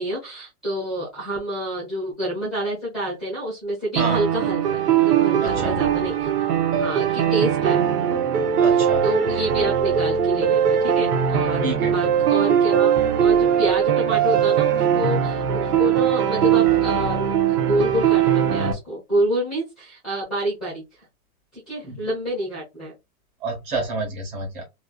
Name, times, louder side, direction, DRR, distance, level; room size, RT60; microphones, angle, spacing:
voice 1, 0.0-4.8 5.0-6.3 6.7-7.8 8.7-12.9 13.2-21.0 21.7-22.9, right 1 dB, ahead, -6 dB, 0.7 m, -28 dB
sound 1, 4.0-18.7, right 9 dB, 80° right, 1.1 m, -20 dB
voice 2, 5.4-5.8 8.6-9.0 11.6-12.1 21.8-22.0 23.4-24.6, right 2 dB, 30° right, 1 dB, 1.4 m, -28 dB
3.2 x 2.7 x 2.4 m, 0.22 s
supercardioid pair, 175°, 46 cm